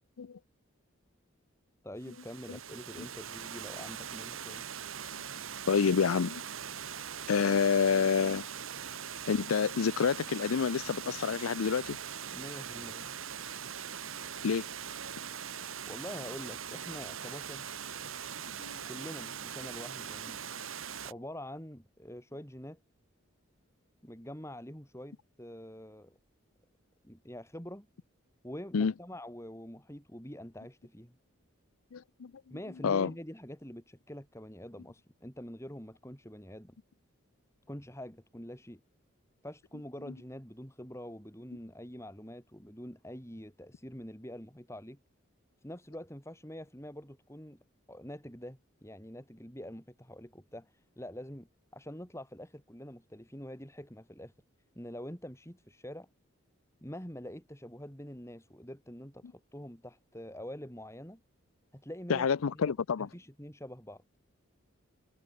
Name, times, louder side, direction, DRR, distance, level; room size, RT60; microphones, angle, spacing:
voice 1, 1.8-4.7 12.3-13.2 15.9-17.7 18.9-20.4 21.0-22.8 24.0-26.2 27.0-27.9 28.4-31.2 32.5-36.8 37.7-38.8 39.4-45.0 45.6-47.6 47.9-54.3 54.8-56.1 56.8-61.2 61.7-62.3 62.7-64.0, equal, 15° left, 5.5 m, -45 dB
Water, 2.0-21.1, right 8 dB, 75° right, 1.8 m, -41 dB
voice 2, 5.7-6.4 7.3-8.5 9.3-12.0 14.4-14.7 18.6-18.8 28.7-28.9 31.9-32.3 32.8-33.1 62.1-63.1, left 6 dB, 85° left, 0.5 m, -28 dB
head